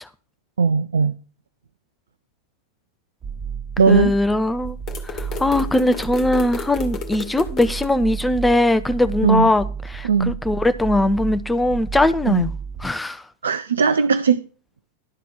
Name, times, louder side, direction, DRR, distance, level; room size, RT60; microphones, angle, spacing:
voice 1, 0.6-1.2 3.8-4.2 9.2-9.5 10.0-10.4 12.3-12.5 13.4-14.5, right 5 dB, 70° right, 0.4 m, -18 dB
sound 1, 3.2-12.9, right 6 dB, 25° right, 2.7 m, -32 dB
voice 2, 3.9-4.8 5.0-9.6 9.9-12.5 12.8-13.2, left 1 dB, 5° left, 0.6 m, -20 dB
sound 2, 4.9-7.9, left 7 dB, 25° left, 2.1 m, -33 dB
12.0 x 4.2 x 8.1 m
figure-of-eight pair, 90°, 0 cm